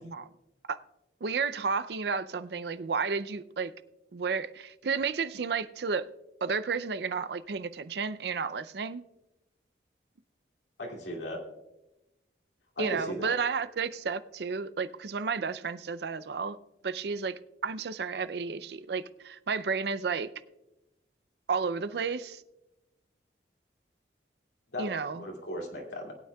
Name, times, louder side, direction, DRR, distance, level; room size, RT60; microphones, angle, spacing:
voice 1, 1.2-3.7 4.1-6.1 6.4-9.0 12.8-16.6 16.8-20.3 21.5-22.4 24.8-25.2, right 5 dB, 70° right, 0.5 m, -32 dB
voice 2, 10.8-11.4 12.8-13.3 24.7-24.9 25.1-26.1, equal, 85° left, 2.5 m, -36 dB
21.0 x 9.2 x 2.3 m
head